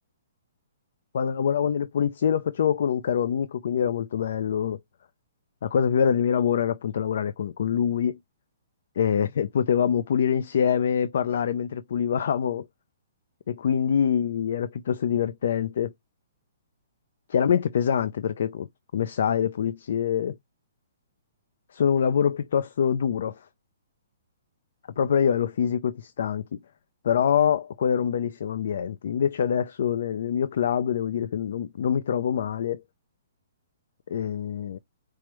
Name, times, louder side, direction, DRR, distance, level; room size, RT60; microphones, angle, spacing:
voice 1, 1.1-4.8 5.6-8.2 9.0-12.6 13.5-15.9 17.3-18.7 18.9-20.4 21.7-23.5 25.0-26.6 27.0-32.8 34.1-34.8, left 8 dB, 60° left, 0.4 m, -25 dB
4.7 x 2.1 x 3.0 m
hypercardioid pair, 160°, 0 cm